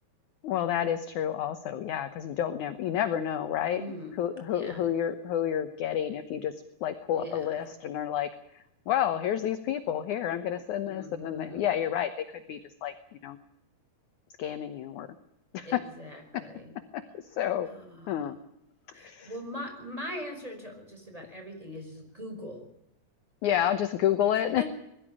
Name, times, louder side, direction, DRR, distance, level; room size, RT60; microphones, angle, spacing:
voice 1, 0.4-3.8 4.2-6.5 6.8-12.9 13.2-13.4 14.4-15.1 15.5-15.8 16.3-16.4 16.9-17.7 18.1-18.4 18.9-19.3 23.4-24.6, left 10 dB, 70° left, 10 dB, 2.0 m, -30 dB
voice 2, 3.7-4.2 4.5-4.9 7.1-7.6 10.8-11.6 15.6-16.7 17.7-18.3 18.9-22.7 24.3-24.6, left 1 dB, 10° right, 3 dB, 5.4 m, -41 dB
21.5 x 14.0 x 10.0 m, 0.84 s
omnidirectional pair, 4.6 m